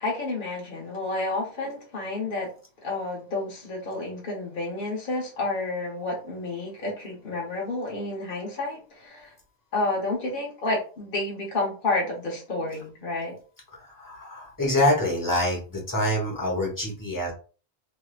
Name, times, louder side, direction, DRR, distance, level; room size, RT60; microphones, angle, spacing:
voice 1, 0.0-2.5 2.8-9.3 9.7-13.3, left 2 dB, 55° left, 1.1 m, -30 dB
voice 2, 13.7-17.3, left 1 dB, 20° left, 1.1 m, -26 dB
3.3 x 2.7 x 2.4 m
omnidirectional pair, 1.0 m